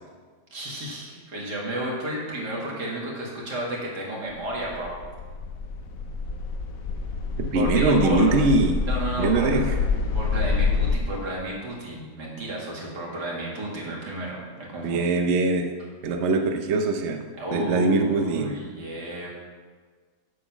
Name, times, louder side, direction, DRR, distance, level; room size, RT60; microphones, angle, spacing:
voice 1, 0.5-5.1 7.5-8.6 8.9-9.7 10.1-15.0 17.4-19.3, right 1 dB, 90° right, -4 dB, 2.8 m, -32 dB
sound 1, 4.4-11.0, left 4 dB, 60° left, 1.1 m, -27 dB
voice 2, 7.4-8.8 9.2-9.8 14.8-15.7 16.0-18.5, right 3 dB, 55° right, 5 dB, 0.9 m, -22 dB
7.9 x 7.7 x 6.0 m, 1.5 s
omnidirectional pair, 1.7 m